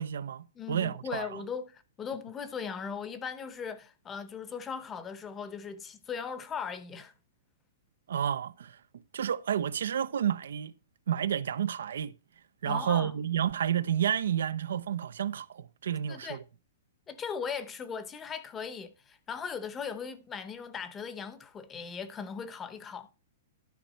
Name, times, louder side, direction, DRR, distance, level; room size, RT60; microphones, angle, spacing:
voice 1, 0.0-1.4 8.1-8.8 9.1-10.7 11.1-12.1 12.6-16.4, right 9 dB, 75° right, 0.6 m, -30 dB
voice 2, 0.5-7.1 12.6-13.1 16.1-16.4 17.1-23.1, left 6 dB, 10° left, 0.9 m, -38 dB
12.0 x 5.6 x 4.3 m
hypercardioid pair, 175°, 0 cm